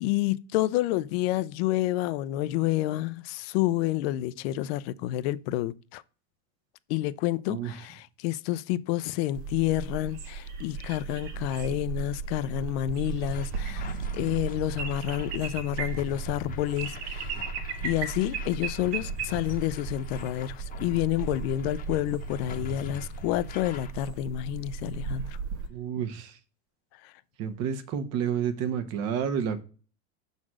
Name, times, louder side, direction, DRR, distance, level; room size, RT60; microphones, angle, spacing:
voice 1, 0.0-6.0 6.9-17.4 17.8-25.4 27.0-27.1, left 14 dB, 65° left, 0.5 m, -29 dB
sound 1, 9.3-25.7, right 5 dB, 75° right, 1.4 m, -36 dB
sound 2, 13.2-23.9, left 6 dB, 25° left, 0.9 m, -44 dB
voice 2, 25.7-26.3 27.4-29.6, right 8 dB, 50° right, 1.1 m, -30 dB
6.1 x 4.0 x 6.2 m
supercardioid pair, 130°, 33 cm